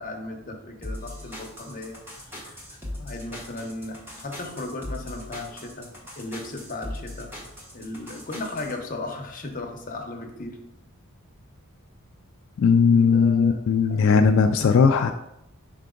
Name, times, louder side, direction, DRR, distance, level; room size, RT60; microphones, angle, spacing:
voice 1, 0.0-5.9 6.2-7.3 7.7-10.6 12.9-13.6 13.9-14.3, left 2 dB, 40° left, 2 dB, 0.9 m, -36 dB
sound 1, 0.8-8.7, left 1 dB, 10° right, 1.2 m, -39 dB
voice 2, 12.6-15.1, left 5 dB, 60° left, 6 dB, 0.3 m, -18 dB
5.8 x 4.6 x 3.8 m, 0.84 s
head